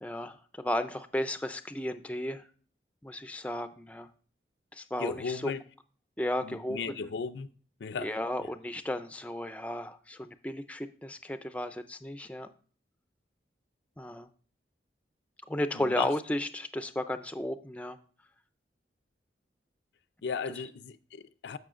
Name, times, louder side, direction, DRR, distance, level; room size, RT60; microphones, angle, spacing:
voice 1, 0.0-2.5 3.0-4.1 4.7-5.5 6.2-7.1 8.0-12.5 14.0-14.3 15.5-18.0, left 1 dB, 10° left, 0.4 m, -34 dB
voice 2, 5.0-5.6 6.4-7.5 7.8-8.1 15.7-16.1 20.2-21.6, left 5 dB, 80° left, 0.5 m, -36 dB
14.5 x 5.6 x 2.5 m
head